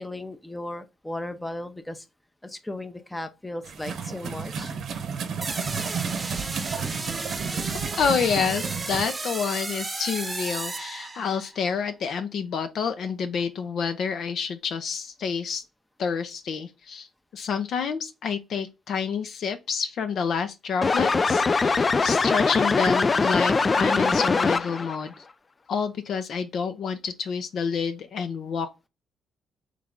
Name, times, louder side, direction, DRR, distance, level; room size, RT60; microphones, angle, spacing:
voice 1, 0.0-2.1 2.4-5.0, left 1 dB, 10° left, 0.7 m, -36 dB
sound 1, 3.6-9.0, right 6 dB, 65° right, 0.8 m, -32 dB
sound 2, 5.4-11.6, right 3 dB, 25° right, 0.8 m, -34 dB
voice 2, 8.0-15.6 16.0-17.1 17.3-25.1 25.7-28.9, left 6 dB, 65° left, 0.7 m, -28 dB
sound 3, 20.8-25.0, left 4 dB, 30° left, 0.3 m, -22 dB
3.7 x 3.3 x 3.6 m
cardioid pair, 90°, 0 cm